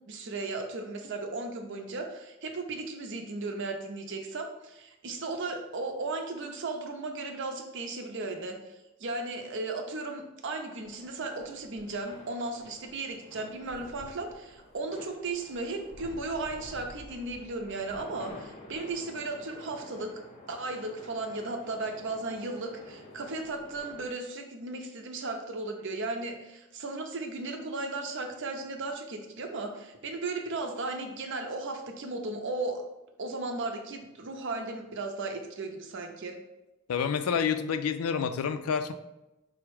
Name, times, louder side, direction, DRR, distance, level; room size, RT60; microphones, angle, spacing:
voice 1, 0.1-20.1 20.5-32.8 33.2-36.4, right 3 dB, 60° right, 4 dB, 0.6 m, -36 dB
sound 1, 10.8-24.1, left 1 dB, 30° left, 0.6 m, -50 dB
voice 2, 36.9-38.9, left 6 dB, 85° left, 10 dB, 0.4 m, -28 dB
4.7 x 2.1 x 4.6 m, 0.98 s
head